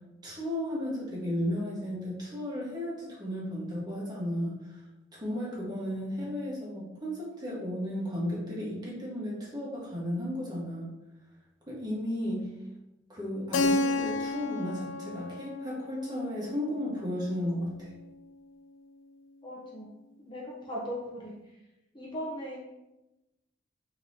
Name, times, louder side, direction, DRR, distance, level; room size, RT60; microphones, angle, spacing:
voice 1, 0.2-4.8 5.1-10.9 11.7-12.5 13.1-17.9, left 1 dB, 20° right, -6 dB, 1.4 m, -34 dB
Keyboard (musical), 13.5-18.1, left 2 dB, 70° left, 0.4 m, -32 dB
voice 2, 19.4-19.9 20.2-21.6 21.9-22.6, equal, 25° left, -4 dB, 0.8 m, -38 dB
5.3 x 3.0 x 2.8 m, 0.98 s
head